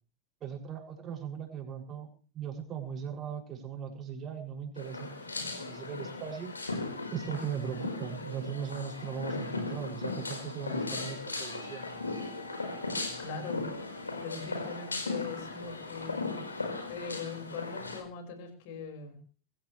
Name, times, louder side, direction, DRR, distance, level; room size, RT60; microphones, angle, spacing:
voice 1, 0.4-2.1 2.3-6.5 7.1-11.9, right 7 dB, 25° right, 0 dB, 7.0 m, -39 dB
sound 1, 4.8-18.0, left 3 dB, 80° left, 4.8 m, -37 dB
voice 2, 13.2-16.4 16.9-19.2, left 5 dB, 50° left, 3 dB, 5.6 m, -41 dB
25.0 x 15.0 x 3.4 m, 0.41 s
figure-of-eight pair, 90°, 0 cm